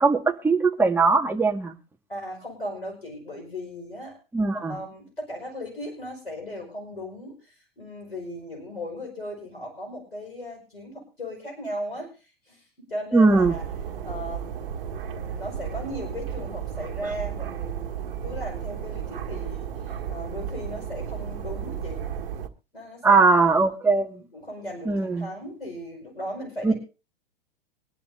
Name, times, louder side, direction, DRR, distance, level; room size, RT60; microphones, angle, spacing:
voice 1, 0.0-1.8 4.3-4.8 13.1-13.6 23.0-24.2 24.9-25.3 26.6-26.7, right 4 dB, 5° right, 1.8 m, -20 dB
voice 2, 2.1-4.2 4.6-12.1 12.4-13.6 14.0-22.0 22.7-23.2 24.3-26.7, equal, 90° left, 5.3 m, -37 dB
sound 1, 13.3-22.5, right 8 dB, 65° right, 1.5 m, -33 dB
24.0 x 11.0 x 2.7 m
figure-of-eight pair, 95°, 29 cm